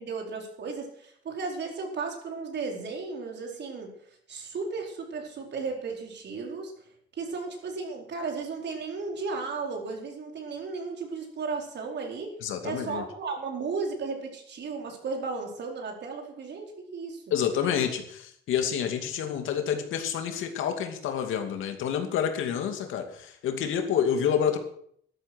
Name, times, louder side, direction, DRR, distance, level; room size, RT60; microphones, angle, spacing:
voice 1, 0.0-3.9 4.3-6.7 7.2-12.3 12.6-17.4, right 4 dB, 60° right, 2 dB, 4.6 m, -35 dB
voice 2, 12.4-13.0 17.3-24.6, left 8 dB, 85° left, 5 dB, 2.6 m, -28 dB
12.5 x 12.0 x 6.3 m, 0.63 s
cardioid pair, 90°, 20 cm